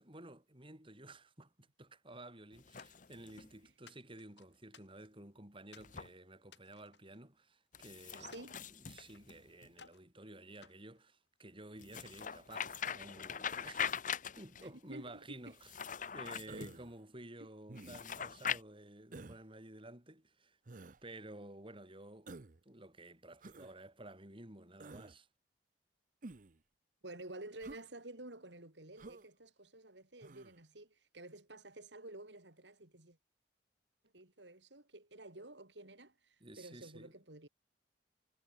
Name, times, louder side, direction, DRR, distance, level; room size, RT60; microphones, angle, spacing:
voice 1, 0.0-8.4 8.7-14.0 14.4-15.7 16.1-20.6 21.0-22.3 22.6-25.3 36.4-37.1, right 1 dB, 30° right, 6.4 m, -53 dB
sound 1, 2.5-3.5 5.8-6.1 7.7-9.7 11.8-14.7 15.5-16.8 17.8-18.6, left 8 dB, 45° left, 1.2 m, -42 dB
sound 2, 2.8-3.4 3.9-5.3 5.7-6.0 6.4-7.8 8.3-9.3 9.7-10.1 10.6-11.7, left 6 dB, 75° left, 5.8 m, -62 dB
voice 2, 8.1-8.6 14.6-15.5 16.6-16.7 17.4-17.5 27.0-33.2 34.1-37.5, right 2 dB, 80° right, 4.7 m, -51 dB
Human voice, 16.5-17.0 17.7-18.2 19.1-19.4 20.7-21.0 22.3-22.6 23.4-23.7 24.8-25.1 26.2-26.6 27.6-27.9 29.0-29.3 30.2-30.5, right 2 dB, 50° right, 0.8 m, -51 dB
head